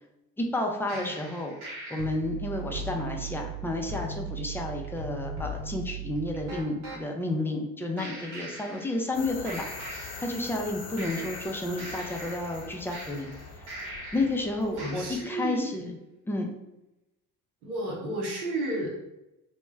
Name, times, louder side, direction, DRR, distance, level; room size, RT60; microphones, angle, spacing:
voice 1, 0.4-9.7 10.2-13.3 14.1-16.0 16.2-16.5, left 2 dB, 5° left, 2 dB, 0.4 m, -31 dB
sound 1, 0.9-7.0 8.0-9.2 9.4-10.7 11.0-14.4 14.8-15.4, right 3 dB, 65° right, 0.9 m, -39 dB
sound 2, 9.1-15.2, left 4 dB, 45° left, 0.6 m, -43 dB
voice 2, 14.7-15.8 17.6-19.0, right 1 dB, 85° right, -2 dB, 0.8 m, -32 dB
2.2 x 2.1 x 3.3 m, 0.92 s
hypercardioid pair, 50°, 43 cm